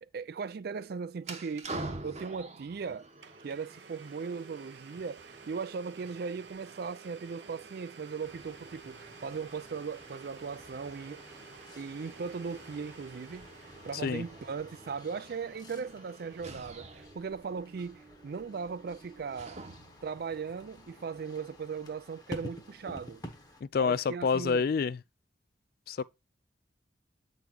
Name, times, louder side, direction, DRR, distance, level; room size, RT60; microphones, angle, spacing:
voice 1, 0.0-1.7 2.0-3.1 3.4-11.2 11.8-13.5 13.8-19.6 20.0-23.2 23.8-24.7, right 5 dB, 55° right, 0.4 m, -38 dB
sound 1, 1.2-20.1, right 2 dB, 40° right, 1.0 m, -48 dB
Domestic sounds home sounds, 2.7-2.8 3.2-14.3, right 6 dB, 75° right, 0.8 m, -52 dB
sound 2, 8.2-23.6, left 1 dB, 20° left, 1.0 m, -51 dB
voice 2, 23.6-25.0 25.9-26.0, left 5 dB, 55° left, 0.3 m, -28 dB
8.1 x 4.0 x 4.5 m
head